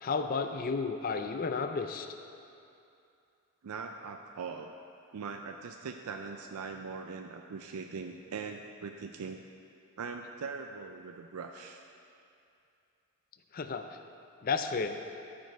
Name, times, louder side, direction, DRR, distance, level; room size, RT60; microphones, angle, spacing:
voice 1, 0.0-2.1 13.5-13.9 14.4-15.0, left 4 dB, 40° left, 7 dB, 0.4 m, -32 dB
voice 2, 3.6-4.7 5.1-9.4 10.0-11.8, right 5 dB, 80° right, 4 dB, 0.4 m, -41 dB
13.5 x 5.1 x 4.5 m, 2.6 s
head